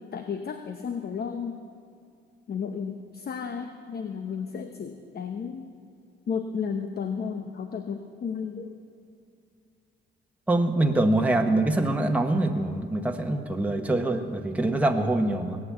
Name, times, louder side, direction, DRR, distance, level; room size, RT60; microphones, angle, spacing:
voice 1, 0.1-1.6 2.5-5.7 6.3-8.8, left 6 dB, 50° left, 7 dB, 0.9 m, -33 dB
voice 2, 10.5-15.6, right 2 dB, 5° right, 3 dB, 1.1 m, -24 dB
19.0 x 8.9 x 8.2 m, 2.4 s
cardioid pair, 90°, 20 cm